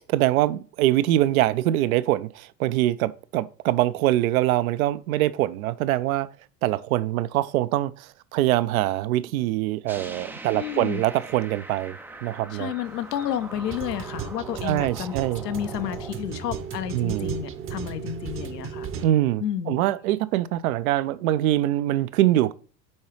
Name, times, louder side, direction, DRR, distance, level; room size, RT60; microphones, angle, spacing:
voice 1, 0.1-6.3 6.6-12.0 12.2-12.7 14.6-15.4 16.9-17.4 19.0-22.5, right 14 dB, 60° right, 0.5 m, -23 dB
sound 1, 9.9-16.1, right 2 dB, 5° right, 0.4 m, -42 dB
voice 2, 10.5-11.0 12.5-15.1 15.4-18.9 19.4-19.9, left 10 dB, 75° left, 0.8 m, -31 dB
sound 2, 12.9-19.0, right 7 dB, 25° right, 0.8 m, -35 dB
7.3 x 4.6 x 3.2 m
figure-of-eight pair, 80°, 50 cm